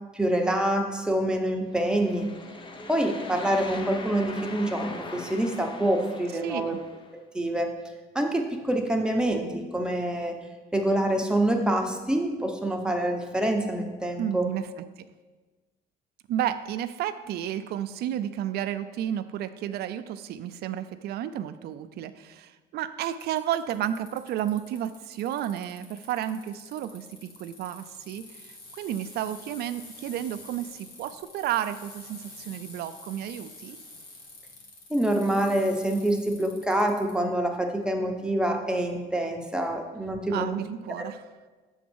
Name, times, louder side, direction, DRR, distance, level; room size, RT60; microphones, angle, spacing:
voice 1, 0.1-2.3 2.9-6.8 7.3-7.7 8.1-10.4 10.7-14.5 34.9-40.5, right 1 dB, 5° right, 2 dB, 0.9 m, -26 dB
sound 1, 1.7-7.1, left 3 dB, 30° left, 0.7 m, -41 dB
voice 2, 6.4-6.8 14.2-14.6 15.0-15.1 16.3-33.8 40.3-41.2, right 11 dB, 70° right, 11 dB, 0.5 m, -32 dB
Bicycle, 23.0-37.1, left 2 dB, 60° left, 1.8 m, -48 dB
7.2 x 3.8 x 6.2 m, 1.3 s
cardioid pair, 110°, 17 cm